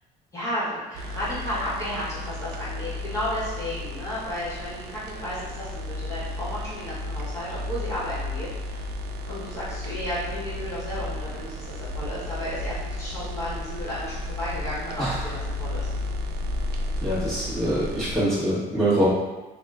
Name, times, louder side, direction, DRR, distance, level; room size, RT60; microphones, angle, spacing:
voice 1, 0.3-8.9 9.2-15.9, equal, 15° left, -10 dB, 1.4 m, -33 dB
sound 1, 0.9-18.2, left 2 dB, 75° right, 0.4 m, -33 dB
voice 2, 17.0-19.1, right 1 dB, ahead, -11 dB, 1.2 m, -24 dB
2.8 x 2.2 x 3.5 m, 1.1 s
cardioid pair, 110°, 17 cm